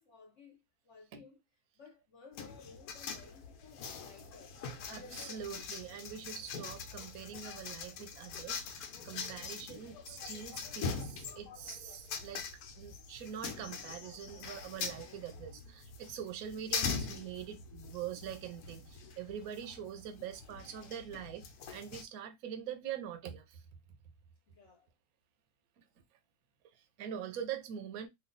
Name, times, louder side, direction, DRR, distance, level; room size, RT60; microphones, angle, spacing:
voice 1, 0.0-1.4 1.8-4.8 24.5-24.9, left 5 dB, 55° left, 1.1 m, -58 dB
sound 1, 2.3-22.0, left 5 dB, 85° left, 1.2 m, -43 dB
voice 2, 4.9-12.4 12.8-21.5 21.7-23.6 25.8-25.9 26.7-28.1, right 9 dB, 75° right, 1.1 m, -44 dB
3.2 x 2.4 x 3.8 m
omnidirectional pair, 1.6 m